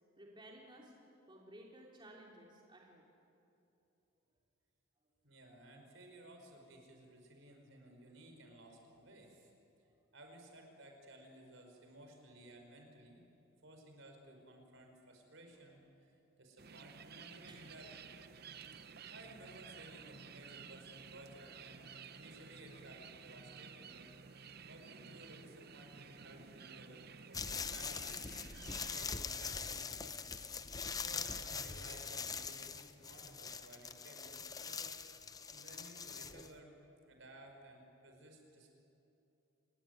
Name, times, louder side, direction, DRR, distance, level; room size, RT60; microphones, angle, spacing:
voice 1, 0.2-0.9 1.3-3.0 17.5-17.6 23.9-24.4, right 1 dB, 25° right, -1 dB, 3.0 m, -57 dB
voice 2, 5.2-9.5 10.1-13.2 13.6-18.2 19.1-21.9 22.1-24.1 24.7-28.3 28.9-30.5 31.0-34.9 35.5-36.7 37.0-38.7, right 1 dB, 65° right, 3 dB, 5.0 m, -57 dB
sound 1, 16.6-29.1, right 6 dB, 50° right, 0.8 m, -54 dB
sound 2, 27.3-36.5, left 5 dB, 20° left, 0.7 m, -43 dB
28.0 x 20.5 x 9.5 m, 2.8 s
head